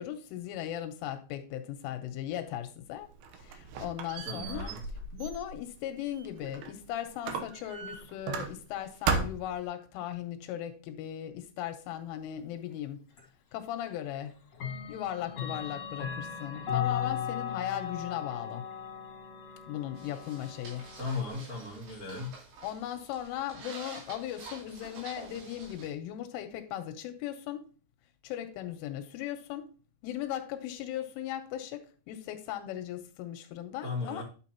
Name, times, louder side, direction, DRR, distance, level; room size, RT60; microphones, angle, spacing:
voice 1, 0.0-3.1 3.4-4.7 5.1-13.1 13.5-14.3 14.9-18.7 19.7-20.9 22.6-27.6 28.2-29.7 30.0-34.2, left 11 dB, 85° left, 3.3 m, -38 dB
Squeak, 3.0-6.8 7.2-8.8 9.1-9.6, right 5 dB, 85° right, 2.2 m, -35 dB
voice 2, 4.2-4.8 21.0-22.4 33.8-34.2, left 3 dB, 40° right, 1.2 m, -36 dB
Clock, 13.2-13.3 14.5-21.3, left 8 dB, 50° left, 2.2 m, -37 dB
sound 1, 20.0-25.9, right 3 dB, 65° right, 4.8 m, -49 dB
10.5 x 6.6 x 2.9 m
omnidirectional pair, 5.7 m